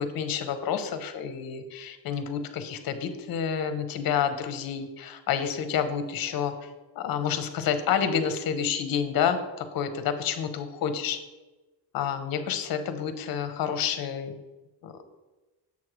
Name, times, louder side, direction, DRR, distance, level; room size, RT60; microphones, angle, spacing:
voice 1, 0.0-6.7 7.0-11.2 11.9-14.4 14.8-15.0, left 7 dB, 50° left, 9 dB, 0.7 m, -29 dB
7.2 x 3.2 x 6.0 m, 1.1 s
cardioid pair, 160°, 46 cm